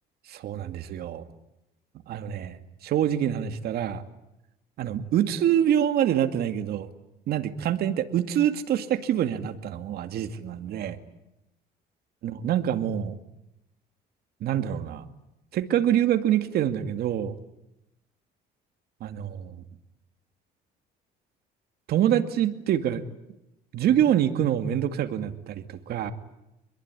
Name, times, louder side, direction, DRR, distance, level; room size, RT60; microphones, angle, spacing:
voice 1, 0.3-1.2 2.1-2.6 2.8-4.0 4.8-6.9 7.3-11.0 12.2-13.2 14.4-15.1 15.5-17.3 19.0-19.6 21.9-23.0 23.7-26.1, right 10 dB, 70° right, 8 dB, 2.3 m, -25 dB
26.5 x 21.5 x 9.9 m, 0.90 s
cardioid pair, 110°, 17 cm